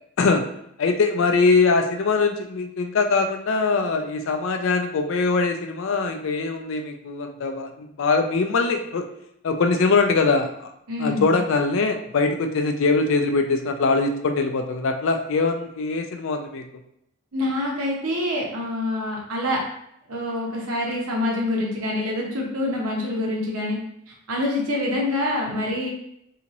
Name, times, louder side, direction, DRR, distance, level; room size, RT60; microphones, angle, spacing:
voice 1, 0.8-9.1 9.4-10.5 11.0-16.6, left 4 dB, 60° left, 5 dB, 0.4 m, -22 dB
voice 2, 10.9-11.4 17.3-19.6 20.1-23.8 24.1-25.9, left 1 dB, 80° right, -2 dB, 0.9 m, -26 dB
2.9 x 2.8 x 2.6 m, 0.74 s
head